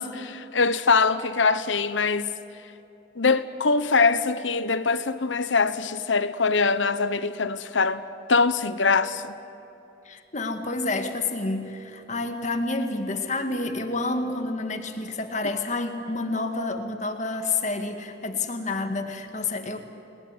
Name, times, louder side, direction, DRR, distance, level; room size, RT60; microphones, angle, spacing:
voice 1, 0.0-2.3 3.2-8.0 8.3-9.3, left 4 dB, 85° left, 1.1 m, -23 dB
voice 2, 10.1-19.8, left 3 dB, 40° left, 2.0 m, -29 dB
29.5 x 20.0 x 9.7 m
head